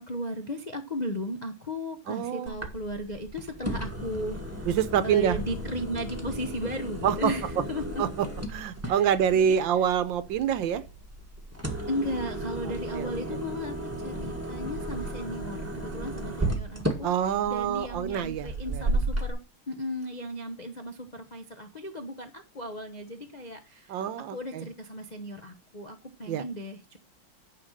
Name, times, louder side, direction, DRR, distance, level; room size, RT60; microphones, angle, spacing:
voice 1, 0.0-4.7 5.0-8.0 8.8-9.6 11.9-19.4 19.7-24.0 24.3-27.0, equal, 45° left, 0.5 m, -36 dB
voice 2, 2.1-2.6 4.6-5.4 7.0-7.3 8.0-8.3 8.5-10.8 12.7-13.4 17.0-18.8 23.9-24.7 26.3-26.4, right 9 dB, 70° right, 1.4 m, -26 dB
sound 1, 2.5-19.3, right 1 dB, 10° right, 1.3 m, -34 dB
9.9 x 5.0 x 6.5 m
omnidirectional pair, 2.2 m